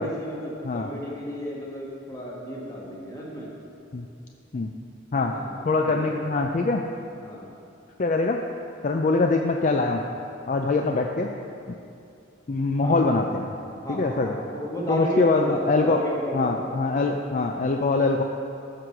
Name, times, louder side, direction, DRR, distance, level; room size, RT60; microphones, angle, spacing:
voice 1, 0.0-3.5 5.2-6.2 7.2-7.5 12.8-13.1 13.8-16.8, equal, 20° left, -4 dB, 1.7 m, -33 dB
voice 2, 5.6-6.8 8.0-8.4 8.8-10.0 10.5-11.3 12.5-13.5 13.9-14.4 14.9-16.0 16.3-18.2, left 3 dB, 40° left, 3 dB, 0.4 m, -23 dB
14.0 x 4.8 x 6.0 m, 2.6 s
head